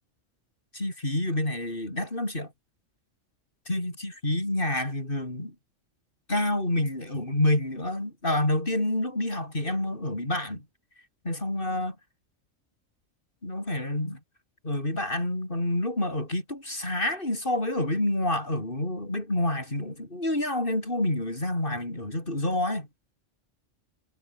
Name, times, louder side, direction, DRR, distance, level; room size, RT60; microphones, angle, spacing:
voice 1, 0.7-2.5 3.7-5.5 6.3-10.6 11.2-12.0 13.4-14.2 14.6-22.9, left 1 dB, 45° left, 6.4 m, -28 dB
omnidirectional pair, 1.3 m